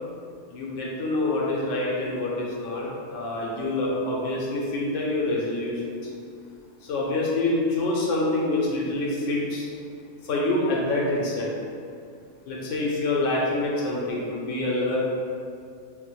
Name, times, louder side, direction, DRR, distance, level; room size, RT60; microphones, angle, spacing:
voice 1, 0.5-6.1 6.8-9.7 10.2-11.5 12.5-15.0, left 2 dB, 90° left, -4 dB, 0.9 m, -26 dB
3.6 x 2.1 x 3.0 m, 2.3 s
omnidirectional pair, 1.2 m